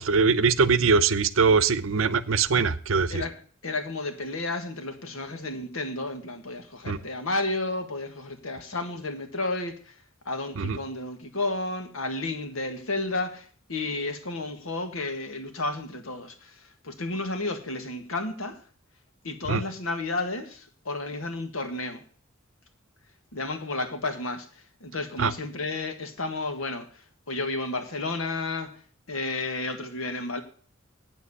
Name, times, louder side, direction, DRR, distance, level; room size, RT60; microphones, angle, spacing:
voice 1, 0.0-3.2 6.9-7.0 10.6-10.8 19.5-19.6 25.2-25.3, right 5 dB, 70° right, 16 dB, 0.7 m, -22 dB
voice 2, 3.6-9.9 10.2-18.6 19.2-22.0 23.3-24.5 24.8-28.7 29.1-30.4, left 2 dB, 85° left, 7 dB, 1.6 m, -32 dB
9.0 x 7.8 x 8.2 m, 0.43 s
head